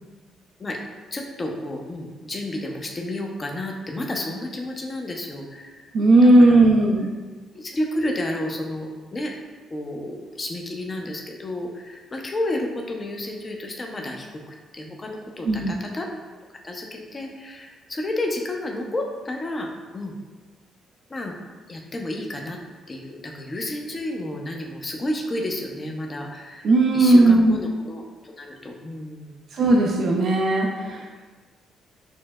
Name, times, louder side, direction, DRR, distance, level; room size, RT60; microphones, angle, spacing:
voice 1, 1.1-5.9 6.2-6.7 7.5-9.3 9.7-16.1 16.6-20.1 21.1-21.3 21.7-22.6 22.9-29.4 30.8-30.9, left 1 dB, 35° left, 1 dB, 0.6 m, -31 dB
voice 2, 5.9-7.2 15.5-15.7 26.6-27.6 29.5-31.2, right 2 dB, 65° right, -1 dB, 0.4 m, -17 dB
6.1 x 2.1 x 2.3 m, 1.3 s
supercardioid pair, 55°, 0 cm